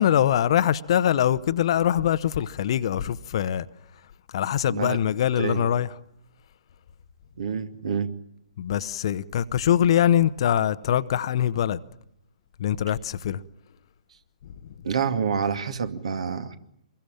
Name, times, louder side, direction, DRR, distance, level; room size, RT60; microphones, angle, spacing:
voice 1, 0.0-3.7 4.3-5.9 8.6-11.8 12.6-13.4 14.4-14.7, left 10 dB, 45° left, 1.1 m, -23 dB
voice 2, 7.4-8.1 14.8-16.6, right 6 dB, 55° right, 2.5 m, -27 dB
26.0 x 22.0 x 8.9 m
figure-of-eight pair, 125°, 4 cm